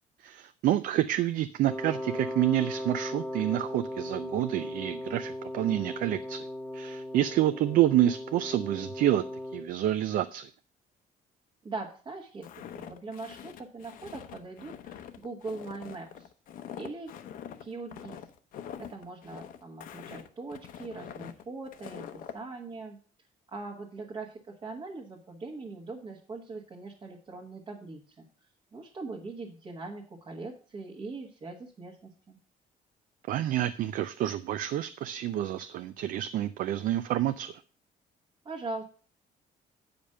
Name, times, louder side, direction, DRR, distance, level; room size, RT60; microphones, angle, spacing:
voice 1, 0.2-6.5 6.7-9.2 9.5-10.5 33.3-37.6, right 13 dB, 60° right, 11 dB, 0.5 m, -28 dB
Wind instrument woodwind instrument, 1.6-9.7, left 1 dB, 5° left, 0.8 m, -37 dB
voice 2, 11.6-12.5 12.7-16.3 16.8-17.1 17.6-18.2 18.8-23.0 23.5-28.3 28.7-32.4 38.4-38.8, right 3 dB, 30° right, -1 dB, 1.3 m, -41 dB
Walk footsteps, 12.4-22.4, left 9 dB, 60° left, 0.8 m, -44 dB
8.7 x 5.2 x 6.5 m, 0.40 s
cardioid pair, 175°, 16 cm